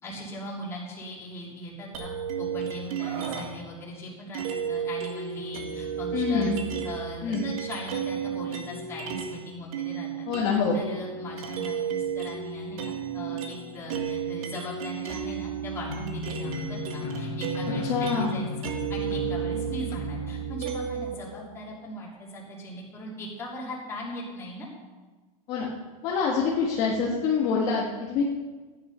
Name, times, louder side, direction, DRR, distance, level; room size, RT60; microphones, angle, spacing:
voice 1, 0.0-2.1 2.4-6.5 6.8-24.7, left 1 dB, 15° left, -5 dB, 3.0 m, -39 dB
sound 1, 1.9-3.7 4.3-9.4 9.7-21.1, right 7 dB, 70° right, 1.7 m, -33 dB
Screaming, 3.0-3.6 5.0-5.3, right 6 dB, 50° right, 1.4 m, -39 dB
voice 2, 6.1-6.6 7.2-7.5 10.3-10.8 17.8-18.3 25.5-25.7 26.0-28.2, left 5 dB, 30° left, -3 dB, 1.6 m, -25 dB
sound 2, 15.9-20.4, left 5 dB, 85° left, 1.8 m, -36 dB
14.5 x 9.9 x 5.6 m, 1.3 s
supercardioid pair, 175°, 19 cm